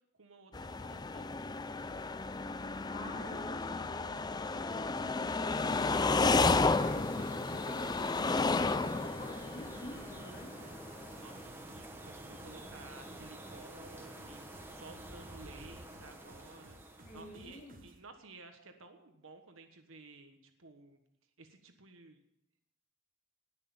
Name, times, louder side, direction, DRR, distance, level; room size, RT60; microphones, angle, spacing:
voice 1, 0.1-1.4 11.2-14.5 14.7-16.8 17.1-21.0 21.4-22.2, right 3 dB, 70° right, 6 dB, 1.4 m, -54 dB
sound 1, 0.5-10.6, left 3 dB, 20° left, 0.4 m, -32 dB
voice 2, 2.9-5.1 5.4-10.6 17.0-17.8, left 1 dB, 35° left, -2 dB, 3.7 m, -49 dB
sound 2, 6.3-17.8, right 1 dB, 10° right, 1.4 m, -49 dB
sound 3, 7.1-18.0, right 1 dB, 40° right, 1.3 m, -58 dB
19.0 x 6.6 x 7.3 m, 0.81 s
head